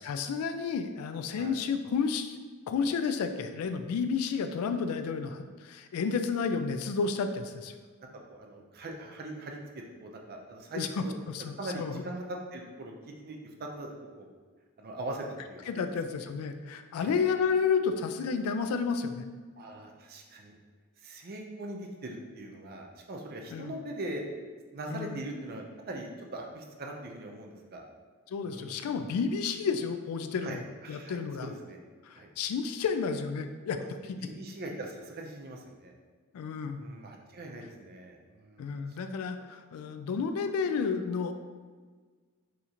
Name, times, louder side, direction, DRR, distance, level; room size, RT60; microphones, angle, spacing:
voice 1, 0.0-2.4 2.7-7.7 10.7-12.0 15.7-19.2 23.5-23.8 24.9-25.2 28.3-30.6 30.9-31.5 32.0-33.8 34.1-34.3 36.3-36.8 38.6-41.3, left 5 dB, 75° left, 9 dB, 0.3 m, -31 dB
voice 2, 8.3-9.6 10.0-11.1 11.6-12.2 12.5-14.3 14.8-15.8 17.0-17.2 19.6-20.5 21.0-24.2 24.7-27.9 28.4-28.9 30.4-30.6 30.8-31.8 32.1-32.3 33.8-33.9 34.2-35.9 36.7-38.6, right 1 dB, 45° right, 1 dB, 0.5 m, -41 dB
2.8 x 2.5 x 4.2 m, 1.5 s
head